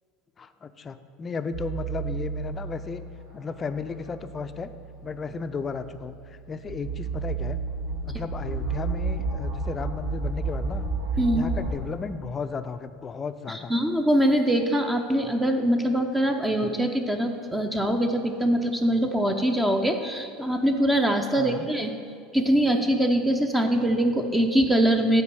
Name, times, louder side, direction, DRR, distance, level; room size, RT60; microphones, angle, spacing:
voice 1, 0.4-3.0 3.3-4.7 5.0-7.6 8.0-10.8 11.3-13.7 21.4-21.7, left 5 dB, 30° left, 10 dB, 0.5 m, -34 dB
sound 1, 1.5-2.8 3.5-11.7, right 4 dB, 75° right, 1.7 m, -32 dB
voice 2, 13.5-21.9 22.3-25.2, right 1 dB, 10° right, 5 dB, 0.7 m, -23 dB
8.2 x 4.5 x 6.8 m, 2.2 s
hypercardioid pair, 80°, 0 cm